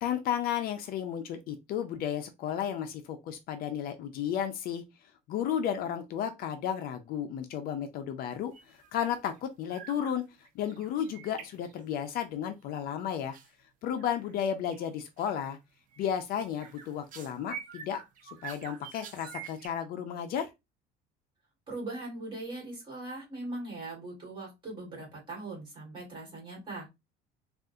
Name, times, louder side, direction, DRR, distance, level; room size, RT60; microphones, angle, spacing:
voice 1, 0.0-4.8 5.3-10.2 10.5-13.4 13.8-15.6 16.0-18.0 18.4-20.5, left 9 dB, 55° left, 0.4 m, -33 dB
sound 1, 8.5-8.9 9.2-9.4 9.7-10.2 10.4-12.2 13.3-13.5 14.0-14.4 14.7-14.9 15.2-15.5 15.9-19.7, right 8 dB, 45° right, 0.5 m, -47 dB
voice 2, 21.7-26.9, right 2 dB, 25° right, 1.9 m, -40 dB
3.6 x 2.4 x 2.6 m
cardioid pair, 170°, 19 cm